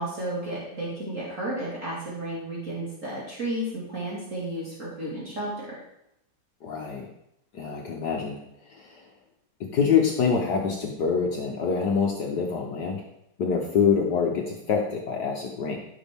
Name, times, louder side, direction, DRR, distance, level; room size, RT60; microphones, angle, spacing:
voice 1, 0.0-5.8, right 1 dB, 40° right, -6 dB, 2.5 m, -32 dB
voice 2, 6.6-7.1 7.5-8.4 8.7-9.0 9.6-13.0 13.4-15.8, left 6 dB, 60° left, 0 dB, 1.5 m, -25 dB
14.5 x 6.1 x 3.6 m, 0.83 s
omnidirectional pair, 2.1 m